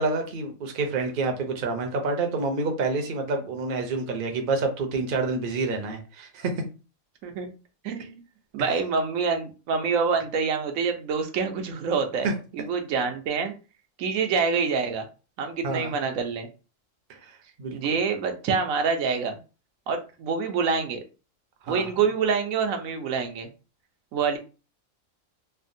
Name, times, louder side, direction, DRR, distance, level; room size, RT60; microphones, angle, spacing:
voice 1, 0.0-6.5 12.2-12.3 15.6-16.0 17.1-17.3 17.6-17.8 21.6-21.9, right 3 dB, 50° right, 0.7 m, -28 dB
voice 2, 7.8-8.2 8.5-13.5 14.0-15.1 15.4-16.5 17.7-19.4 19.9-21.0 21.7-23.5 24.1-24.4, right 5 dB, 80° right, 1.0 m, -26 dB
3.3 x 2.1 x 2.6 m
omnidirectional pair, 1.4 m